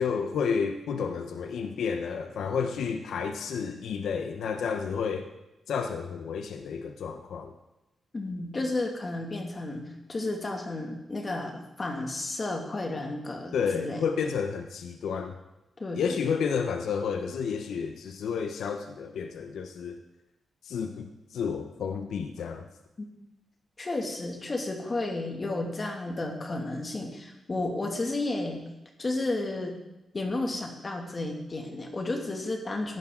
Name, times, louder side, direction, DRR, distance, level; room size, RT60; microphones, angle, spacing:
voice 1, 0.0-5.3 5.7-7.5 13.5-15.4 15.9-20.0 20.6-22.7, left 6 dB, 80° left, 6 dB, 1.0 m, -31 dB
voice 2, 8.1-14.0 15.8-16.4 23.0-23.1 23.8-28.6 29.0-29.8 30.1-33.0, left 2 dB, 35° left, 2 dB, 2.5 m, -32 dB
16.0 x 10.5 x 4.0 m, 0.94 s
cardioid pair, 80°, 0 cm